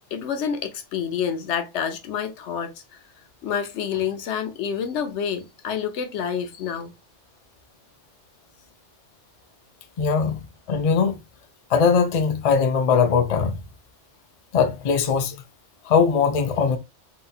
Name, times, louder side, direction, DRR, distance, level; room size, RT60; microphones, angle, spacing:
voice 1, 0.1-2.7 3.4-6.9, left 7 dB, 75° left, 1.0 m, -28 dB
voice 2, 10.0-10.4 10.7-11.2 11.7-13.6 14.5-15.4 15.8-16.8, left 6 dB, 50° left, 0.4 m, -20 dB
3.9 x 2.7 x 2.3 m
omnidirectional pair, 1.2 m